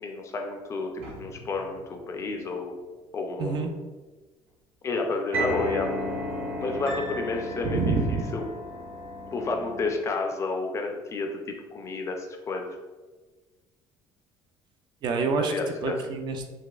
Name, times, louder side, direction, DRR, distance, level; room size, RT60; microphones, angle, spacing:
voice 1, 0.0-2.8 3.1-3.7 4.8-5.9 6.6-8.4 9.3-12.8 15.4-15.9, left 3 dB, 30° left, 3 dB, 0.4 m, -31 dB
sound 1, 1.0-2.0 5.3-9.9, equal, 70° right, 1.1 m, -34 dB
voice 2, 3.4-3.7 7.6-8.2 15.0-15.5 15.8-16.5, right 4 dB, 45° right, 5 dB, 0.4 m, -27 dB
4.0 x 2.5 x 2.3 m, 1.3 s
cardioid pair, 145°, 10 cm